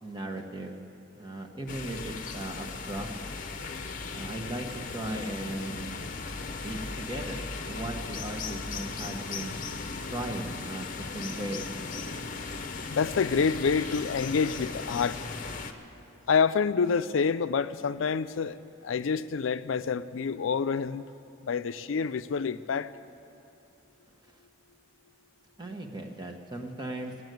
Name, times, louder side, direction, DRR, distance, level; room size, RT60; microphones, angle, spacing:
voice 1, 0.0-0.8 1.1-3.1 4.1-4.7 4.9-6.2 6.6-9.6 10.1-11.7 25.6-27.1, right 1 dB, 20° right, 1.2 m, -37 dB
sound 1, 1.7-15.7, left 4 dB, 40° left, 0.8 m, -37 dB
voice 2, 12.9-15.2 16.3-18.6 18.8-21.1 21.4-22.9, left 5 dB, 85° left, 0.4 m, -27 dB
18.5 x 7.9 x 9.3 m
head